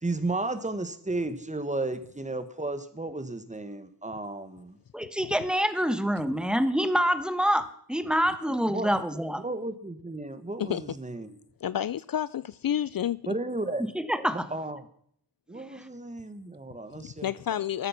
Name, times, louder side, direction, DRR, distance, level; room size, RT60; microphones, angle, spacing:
voice 1, 0.0-4.8 8.7-8.9 9.4-11.4 13.3-13.8 14.3-14.9 15.5-17.3, right 2 dB, 20° right, 1.4 m, -33 dB
voice 2, 4.9-9.4 13.9-14.5 15.5-15.8, equal, ahead, 1.1 m, -26 dB
voice 3, 11.6-13.2 17.0-17.9, left 10 dB, 60° left, 0.5 m, -29 dB
14.0 x 13.0 x 5.9 m
wide cardioid pair, 125°, 40 cm